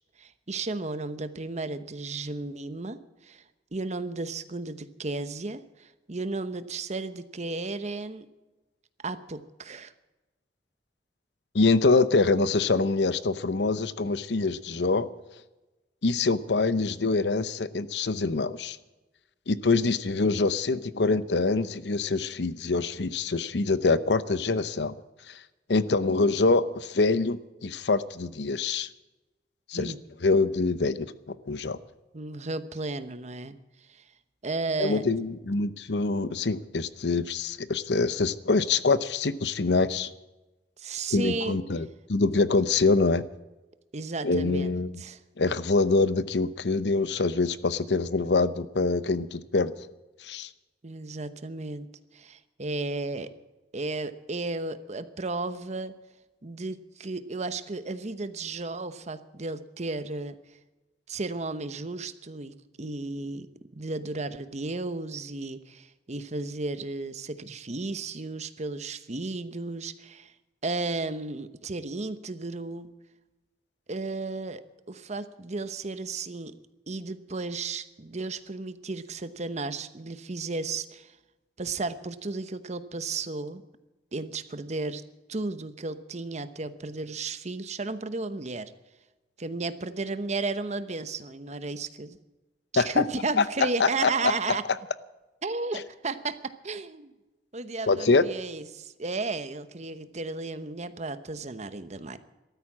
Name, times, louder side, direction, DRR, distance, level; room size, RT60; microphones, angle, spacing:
voice 1, 0.2-3.4 3.7-8.3 9.0-9.9 29.7-30.0 32.1-33.6 33.9-34.0 34.4-35.0 40.8-41.6 43.9-45.2 50.8-51.9 52.1-53.3 53.7-55.9 56.4-60.4 61.1-63.5 63.7-70.3 70.6-72.9 73.9-74.6 74.9-76.5 76.9-81.1 81.6-83.6 84.1-85.0 85.3-88.7 89.4-92.2 92.7-94.6 95.4-97.1 97.5-102.2, right 3 dB, 40° right, 12 dB, 1.0 m, -34 dB
voice 2, 11.5-15.1 16.0-18.8 19.5-24.9 25.3-25.4 25.7-28.9 29.7-29.9 30.2-31.1 31.5-31.8 34.8-40.1 41.1-43.2 44.2-45.0 45.4-49.8 50.2-50.5 92.8-93.0 93.4-94.1 97.9-98.3, left 3 dB, 75° left, 15 dB, 0.8 m, -25 dB
14.5 x 13.0 x 7.4 m, 1.1 s
head